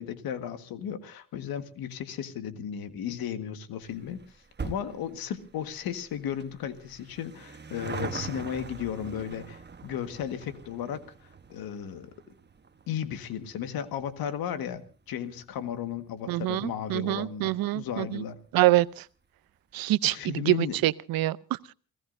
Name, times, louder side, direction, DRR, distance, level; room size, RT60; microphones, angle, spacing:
voice 1, 0.0-4.2 4.6-12.1 12.9-18.4 20.0-20.8, left 9 dB, 85° left, 1.7 m, -35 dB
sound 1, 3.8-16.6 16.9-17.0 17.8-17.9 18.1-18.2 18.5-18.6, right 5 dB, 30° right, 1.1 m, -43 dB
voice 2, 16.3-18.2 18.5-19.0 19.7-21.7, right 17 dB, 80° right, 0.7 m, -26 dB
29.5 x 16.5 x 2.6 m
cardioid pair, 70°, 35 cm